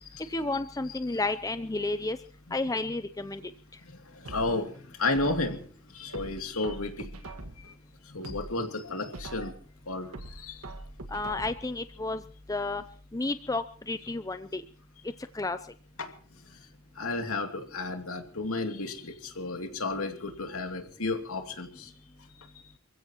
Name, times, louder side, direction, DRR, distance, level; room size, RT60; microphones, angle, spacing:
voice 1, 0.3-2.2 2.5-3.4 11.1-12.2 12.5-12.8 13.1-14.6 15.3-15.6, left 2 dB, 15° left, 11 dB, 0.7 m, -31 dB
voice 2, 3.8-5.6 5.9-7.1 7.6-7.7 8.1-9.5 9.9-10.7 16.0-16.1 17.0-21.9, left 2 dB, 70° left, 5 dB, 2.8 m, -33 dB
sound 1, 4.2-5.7 6.1-7.7 8.1-9.7 10.1-11.7 12.1-12.2, right 2 dB, 80° right, 1.9 m, -43 dB
28.0 x 15.5 x 3.1 m, 0.42 s
head